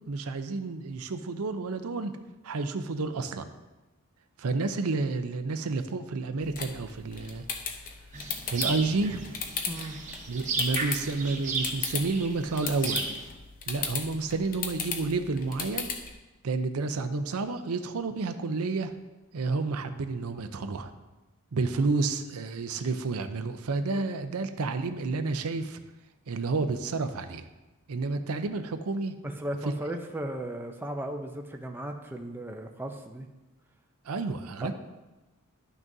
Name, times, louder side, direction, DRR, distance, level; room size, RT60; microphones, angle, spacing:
voice 1, 0.1-2.1 2.4-3.5 4.4-7.4 8.5-9.3 10.3-13.2 13.7-15.9 16.4-18.9 19.3-20.9 21.5-25.8 26.3-27.4 27.9-29.1 34.0-34.7, right 3 dB, 85° right, 9 dB, 0.6 m, -30 dB
sound 1, 6.4-16.1, left 6 dB, 40° left, 0.7 m, -37 dB
sound 2, 8.1-13.3, right 4 dB, 35° right, 1.0 m, -35 dB
voice 2, 9.6-10.0 21.8-21.9 23.9-24.0 24.3-24.4 29.2-33.3 34.6-34.7, right 1 dB, 10° right, 3 dB, 0.5 m, -36 dB
12.0 x 6.1 x 2.7 m, 1.1 s
head